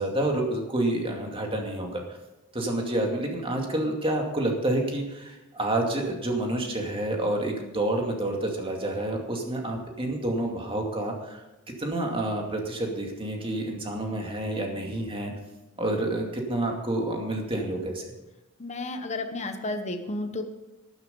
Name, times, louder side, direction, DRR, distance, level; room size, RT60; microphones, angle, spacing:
voice 1, 0.0-2.2 2.5-11.4 11.8-15.3 15.8-18.1, right 1 dB, 25° right, 1 dB, 2.4 m, -29 dB
voice 2, 18.6-20.4, left 2 dB, 30° left, 6 dB, 1.1 m, -32 dB
12.5 x 11.0 x 5.4 m, 0.99 s
head